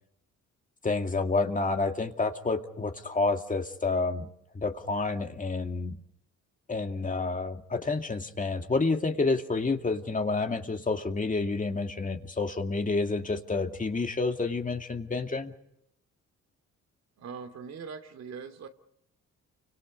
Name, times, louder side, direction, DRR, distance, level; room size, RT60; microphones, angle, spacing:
voice 1, 0.8-4.3 4.5-6.0 6.7-15.5, left 3 dB, 25° left, 5 dB, 2.3 m, -29 dB
voice 2, 17.2-18.7, right 6 dB, 60° right, 7 dB, 2.9 m, -41 dB
29.5 x 25.5 x 5.5 m, 0.79 s
cardioid pair, 90°, 30 cm